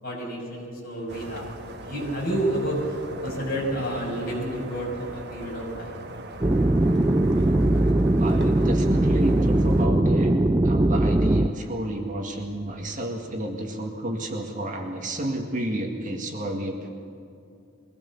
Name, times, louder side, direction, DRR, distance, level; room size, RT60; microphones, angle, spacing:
voice 1, 0.0-5.9, right 1 dB, 45° left, -2 dB, 6.1 m, -30 dB
sound 1, 1.1-9.9, right 2 dB, 55° right, 1.4 m, -40 dB
sound 2, 6.4-11.5, right 1 dB, 15° right, 0.5 m, -20 dB
voice 2, 8.2-10.4 10.6-16.9, right 1 dB, 40° right, 2 dB, 2.0 m, -31 dB
23.0 x 17.5 x 7.2 m, 2.6 s
head